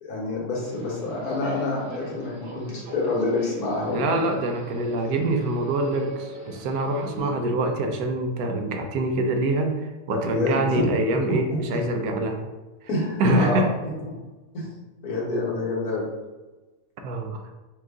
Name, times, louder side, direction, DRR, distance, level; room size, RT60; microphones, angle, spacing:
voice 1, 0.0-4.2 4.8-4.9 7.1-7.3 10.1-10.9 11.5-11.8 12.9-13.6 14.0-14.1 14.5-14.6 15.0-16.1, left 2 dB, 75° left, -4 dB, 1.7 m, -28 dB
Subway metro underground, 0.6-7.2, right 1 dB, 45° right, 0.8 m, -42 dB
voice 2, 3.9-12.4 13.2-13.7 17.0-17.4, right 2 dB, 75° right, 4 dB, 1.1 m, -25 dB
4.6 x 2.5 x 3.6 m, 1.2 s
omnidirectional pair, 1.6 m